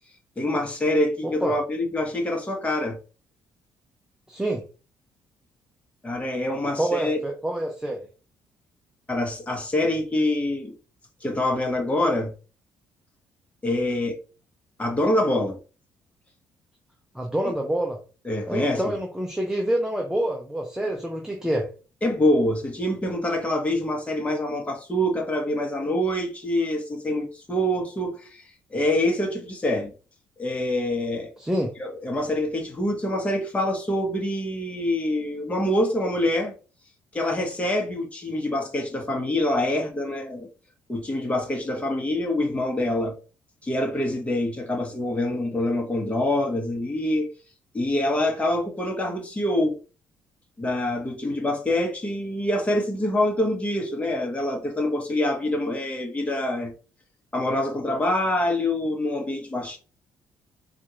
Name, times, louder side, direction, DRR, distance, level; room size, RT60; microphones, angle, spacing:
voice 1, 0.4-3.0 6.0-7.2 9.1-10.7 11.2-12.3 13.6-14.2 14.8-15.6 17.4-17.5 18.2-18.8 22.0-28.4 28.7-29.9 30.4-31.3 31.8-36.5 37.1-40.5 40.9-43.2 43.6-47.3 47.7-49.8 50.6-56.7 57.3-59.8, left 1 dB, 20° left, 1.4 m, -25 dB
voice 2, 1.2-1.5 4.3-4.6 6.7-8.0 17.1-18.0 18.5-21.7 31.4-31.7, right 1 dB, 5° right, 0.8 m, -27 dB
4.1 x 2.6 x 3.2 m
cardioid pair, 80°, 7 cm